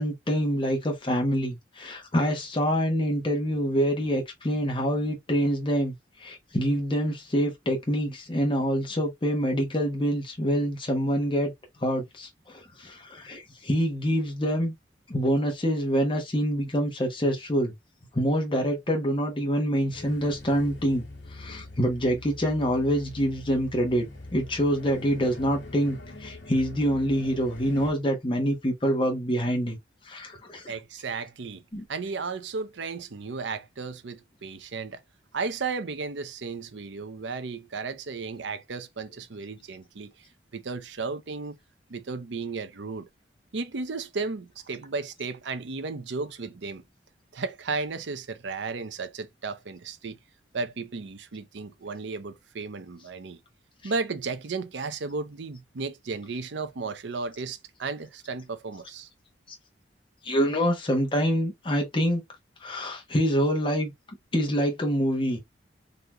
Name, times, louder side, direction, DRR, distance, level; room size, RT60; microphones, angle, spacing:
voice 1, 0.0-5.9 6.2-11.5 11.8-14.7 15.1-17.7 18.1-21.0 21.3-24.0 24.3-29.8 30.0-30.7 31.7-31.8 53.8-53.9 60.2-62.2 62.6-63.9 64.3-65.4, equal, 25° left, 1.1 m, -26 dB
sound 1, 19.9-27.9, left 2 dB, 70° left, 1.7 m, -44 dB
voice 2, 30.7-31.6 31.9-35.0 35.3-40.1 40.5-41.6 41.9-43.1 43.5-46.8 47.3-50.2 50.5-53.4 53.8-59.1, right 4 dB, 80° right, 0.6 m, -34 dB
4.0 x 2.9 x 3.0 m
head